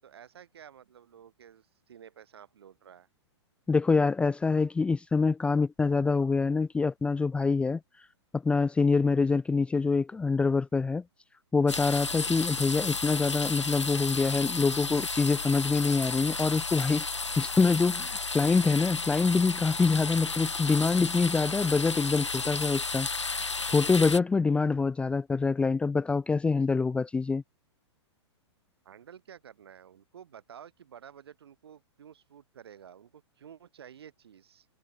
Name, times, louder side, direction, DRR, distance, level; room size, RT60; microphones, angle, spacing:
voice 1, 0.0-3.1 28.8-34.7, right 9 dB, 60° right, 6.0 m, -51 dB
voice 2, 3.7-7.8 8.3-11.0 11.5-17.1 17.4-23.1 23.6-27.4, left 4 dB, 5° left, 0.6 m, -25 dB
sound 1, 11.7-24.2, left 4 dB, 80° left, 1.1 m, -33 dB
figure-of-eight pair, 110°, 15 cm